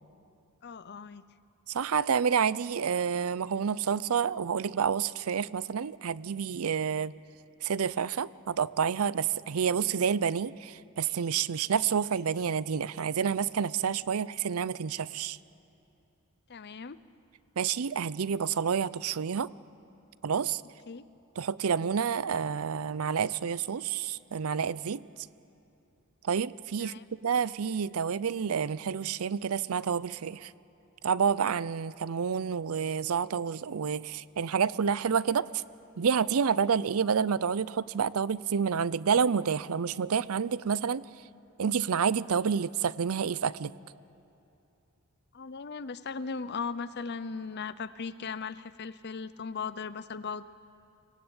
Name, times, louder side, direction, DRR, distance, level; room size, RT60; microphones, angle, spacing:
voice 1, 0.6-1.2 16.5-17.0 20.9-21.0 26.8-27.0 45.3-50.4, left 5 dB, 50° left, 15 dB, 0.7 m, -37 dB
voice 2, 1.7-7.1 7.6-15.4 17.6-19.5 20.2-20.6 21.4-25.0 26.2-26.9 27.2-30.5 31.0-35.6 36.0-41.0 41.6-43.7, right 6 dB, 80° right, 19 dB, 0.5 m, -29 dB
24.5 x 18.0 x 8.9 m, 2.7 s
head